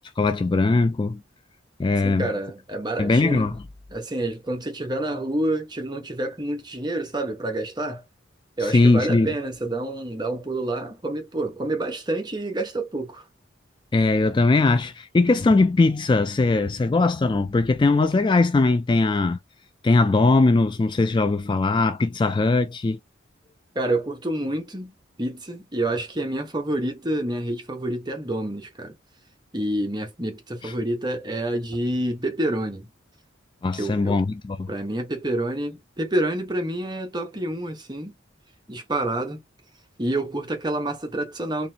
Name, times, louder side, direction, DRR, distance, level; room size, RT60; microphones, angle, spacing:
voice 1, 0.2-1.2 1.8-2.2 3.0-3.5 8.6-9.3 13.9-19.4 19.8-23.0 30.6-30.7 33.6-34.7, left 3 dB, 25° left, 0.3 m, -20 dB
voice 2, 2.0-3.5 3.9-8.0 8.6-13.2 23.7-24.9 25.2-28.9 29.5-32.9 33.7-34.2 34.7-38.1 38.7-39.4 40.0-41.7, right 1 dB, 20° right, 1.2 m, -28 dB
4.1 x 3.2 x 2.8 m
head